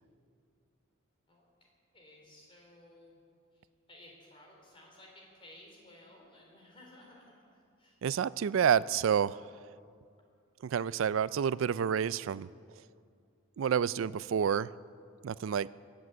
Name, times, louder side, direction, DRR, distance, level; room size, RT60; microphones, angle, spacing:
voice 1, 1.3-1.7 1.9-3.2 3.5-3.6 3.9-8.0, left 1 dB, 25° left, -1 dB, 3.7 m, -56 dB
voice 2, 8.0-9.5 10.6-12.5 13.6-14.7 15.2-15.7, right 8 dB, 70° right, 19 dB, 0.3 m, -29 dB
23.0 x 7.7 x 8.2 m, 2.3 s
head